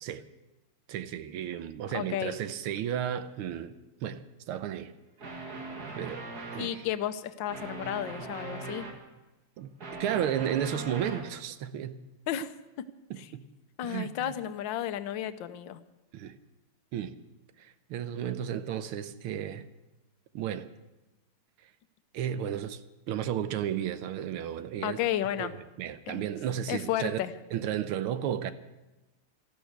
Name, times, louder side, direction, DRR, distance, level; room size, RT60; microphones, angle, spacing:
voice 1, 0.9-3.7 4.0-4.9 5.3-5.6 6.0-6.3 6.5-6.8 9.6-9.7 10.0-12.0 13.1-13.5 13.8-14.3 16.1-16.4 16.9-17.2 17.6-19.7 20.3-20.7 22.1-22.8 23.1-25.0 25.4-27.2 27.5-28.5, right 10 dB, 75° right, 1.6 m, -33 dB
voice 2, 1.9-2.3 6.6-8.9 12.3-12.5 13.2-13.3 13.8-15.8 24.8-25.5 26.1-26.2 26.7-27.3, left 11 dB, 65° left, 1.4 m, -32 dB
sound 1, 5.2-6.8 7.5-9.0 9.6-11.3, right 3 dB, 45° right, 2.5 m, -40 dB
13.5 x 12.5 x 8.0 m
omnidirectional pair, 2.4 m